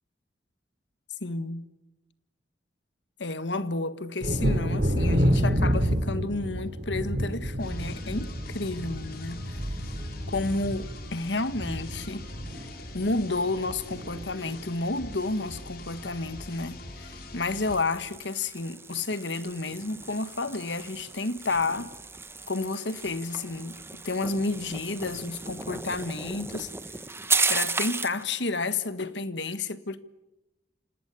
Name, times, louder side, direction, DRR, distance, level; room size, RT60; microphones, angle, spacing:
voice 1, 1.2-1.7 3.2-9.6 10.3-12.2 12.9-21.9 22.5-26.7 27.5-30.0, left 3 dB, 85° left, 1.6 m, -31 dB
Thunder, 4.2-13.6 13.9-14.6 15.0-15.1 15.5-15.7, equal, 55° right, 3.4 m, -29 dB
sound 1, 7.6-17.8, left 2 dB, 55° left, 4.0 m, -44 dB
sound 2, 17.5-28.2, right 4 dB, 15° right, 1.2 m, -34 dB
27.0 x 19.0 x 9.9 m
head